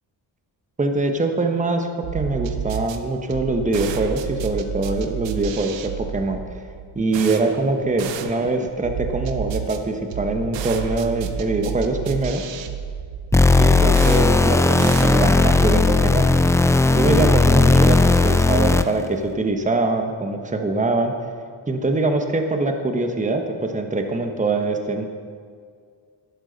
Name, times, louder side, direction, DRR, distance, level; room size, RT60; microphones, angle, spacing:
voice 1, 0.8-1.9 2.1-6.4 6.9-12.4 13.6-16.3 16.9-21.1 21.7-25.0, right 2 dB, 15° right, 5 dB, 1.0 m, -23 dB
sound 1, 2.0-15.6, right 8 dB, 80° right, 0.9 m, -31 dB
sound 2, 13.3-19.1, left 3 dB, 5° left, 0.4 m, -16 dB
11.5 x 11.0 x 4.0 m, 2.1 s
cardioid pair, 80°, 44 cm